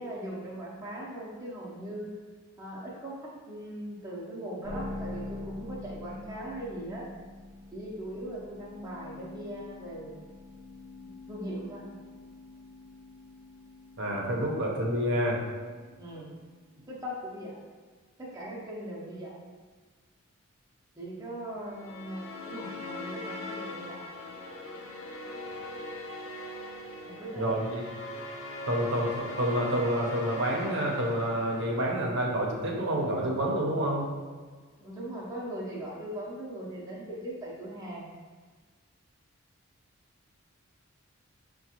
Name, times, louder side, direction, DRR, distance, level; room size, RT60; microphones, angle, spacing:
voice 1, 0.0-2.1 2.6-7.1 7.7-10.3 11.0-11.9 16.0-16.3 16.9-17.5 18.2-19.3 21.0-24.0 27.0-27.4 34.8-38.1, right 1 dB, 15° right, -6 dB, 0.6 m, -39 dB
sound 1, 4.6-16.9, left 2 dB, 15° left, 0.8 m, -45 dB
voice 2, 14.0-15.4 27.4-27.8 28.7-34.1, right 1 dB, 55° right, -2 dB, 0.7 m, -28 dB
sound 2, 21.7-32.1, left 2 dB, 75° left, 0.7 m, -41 dB
5.8 x 2.2 x 2.8 m, 1.5 s
head